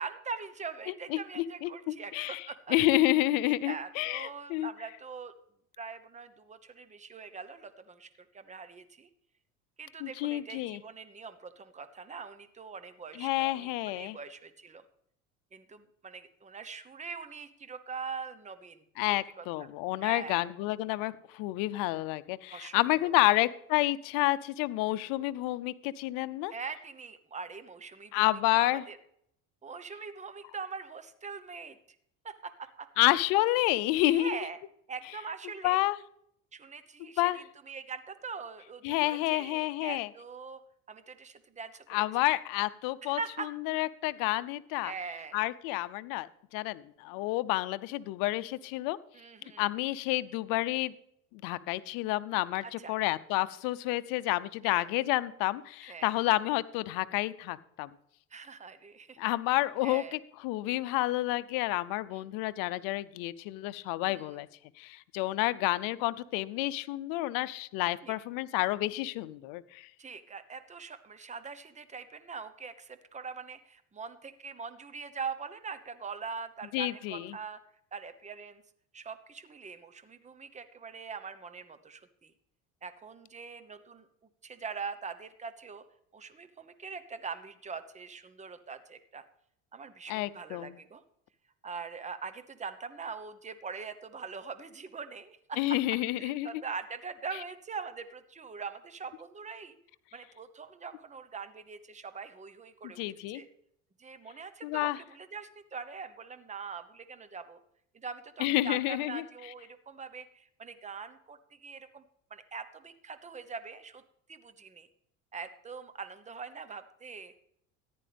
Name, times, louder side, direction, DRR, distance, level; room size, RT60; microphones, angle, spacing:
voice 1, 0.0-2.7 3.4-5.3 5.8-9.1 9.8-14.8 15.5-19.1 19.4-19.7 20.0-20.5 22.5-23.4 26.5-28.3 28.5-29.0 29.6-31.8 32.2-32.9 34.1-34.6 34.9-35.8 36.5-40.6 40.9-42.0 43.0-43.5 44.7-45.4 49.1-49.7 52.6-52.9 54.6-54.9 55.8-56.1 58.3-59.2 59.8-60.1 62.1-62.2 64.1-64.4 68.0-68.2 70.0-77.6 77.9-78.6 78.9-82.3 82.8-84.1 84.4-85.8 86.1-89.2 89.7-91.0 91.6-95.6 96.1-99.8 100.1-103.0 103.3-103.5 104.0-107.6 107.9-112.0 112.3-114.0 114.3-114.9 115.3-117.3, right 5 dB, 20° right, 12 dB, 1.0 m, -42 dB
voice 2, 1.1-4.7 10.0-10.8 13.2-14.2 19.0-26.5 28.1-28.8 33.0-34.4 35.6-36.0 37.2-37.4 38.8-40.1 41.9-44.9 45.3-46.3 46.5-49.0 49.6-50.9 51.3-57.9 59.2-64.5 64.8-69.9 76.7-77.3 90.1-90.8 95.6-96.6 103.0-103.4 104.6-105.0 108.4-109.2, left 17 dB, 80° left, 15 dB, 0.7 m, -29 dB
14.0 x 10.5 x 3.4 m, 0.71 s
supercardioid pair, 100°, 34 cm